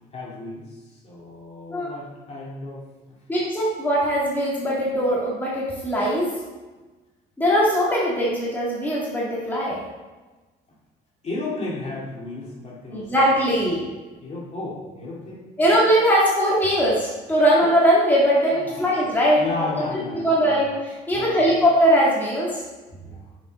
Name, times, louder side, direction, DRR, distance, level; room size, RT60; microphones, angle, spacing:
voice 1, 0.1-0.7 1.0-3.2 11.2-13.1 14.2-15.4 18.6-18.9 19.4-20.6 21.1-21.5 22.9-23.3, left 2 dB, 40° left, -4 dB, 2.2 m, -33 dB
voice 2, 3.3-6.3 7.4-9.8 12.9-13.9 15.6-19.4 20.1-22.6, equal, 10° left, -6 dB, 1.8 m, -20 dB
6.9 x 5.3 x 4.1 m, 1.2 s
cardioid pair, 110°, 17 cm